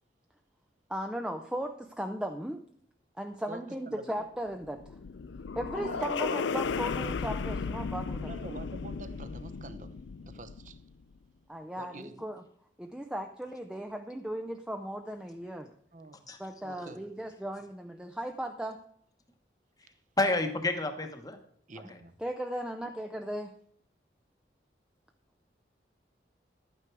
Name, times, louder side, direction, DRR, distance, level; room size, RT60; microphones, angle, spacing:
voice 1, 0.9-2.6 3.2-5.0 5.6-8.4 11.5-12.4 12.8-15.7 16.4-18.8 22.2-23.5, equal, 5° right, 0.5 m, -37 dB
voice 2, 3.5-4.3 5.7-6.7 8.2-10.8 11.8-12.2 15.9-16.2 16.6-17.1 21.7-22.1, right 2 dB, 45° right, 0.8 m, -46 dB
sound 1, 4.5-10.9, left 5 dB, 85° left, 0.4 m, -35 dB
voice 3, 20.2-21.4 21.9-22.0, left 2 dB, 20° left, 1.0 m, -29 dB
12.0 x 9.1 x 4.6 m
head